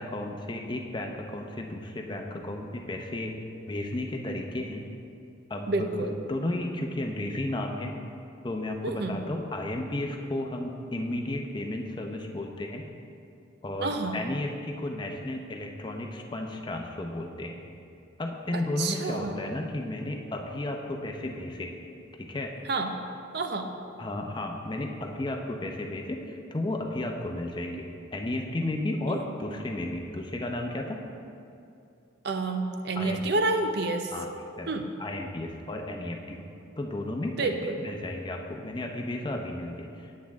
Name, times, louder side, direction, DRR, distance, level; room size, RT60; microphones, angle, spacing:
voice 1, 0.0-3.4 3.7-4.8 5.5-7.9 8.4-12.8 13.6-17.6 18.2-21.7 22.2-22.5 24.0-31.0 33.0-33.2 34.1-34.3 34.6-34.7 35.0-36.4 36.8-37.5 37.8-40.2, left 1 dB, 25° left, 2 dB, 0.6 m, -33 dB
voice 2, 5.7-6.1 8.8-9.2 13.8-14.2 18.5-19.4 22.7-23.0 23.3-23.7 29.1-29.3 32.2-34.1 34.7-34.9 37.4-37.8, right 2 dB, 60° right, 5 dB, 0.6 m, -29 dB
9.6 x 7.5 x 3.5 m, 2.5 s
head